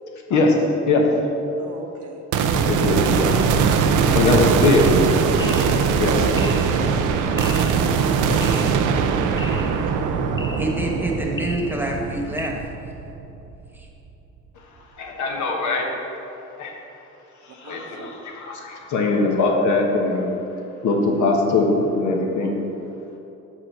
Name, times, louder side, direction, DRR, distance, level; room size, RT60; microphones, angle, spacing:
voice 1, 1.6-2.2 5.2-6.0 17.6-18.2, right 4 dB, 75° right, 2 dB, 1.0 m, -37 dB
sound 1, 2.3-13.7, right 6 dB, 90° right, 0.5 m, -21 dB
voice 2, 2.5-3.3 4.1-4.9 6.0-6.1 15.0-15.9 16.6-16.7 17.5-20.3 20.8-22.5, left 3 dB, 75° left, 1 dB, 1.2 m, -21 dB
sound 2, 5.4-12.5, left 2 dB, 15° left, 0.5 m, -37 dB
voice 3, 10.6-12.7 13.7-13.9, right 1 dB, 5° right, -1 dB, 1.2 m, -27 dB
6.3 x 4.9 x 5.7 m, 2.9 s
cardioid pair, 90°, 30 cm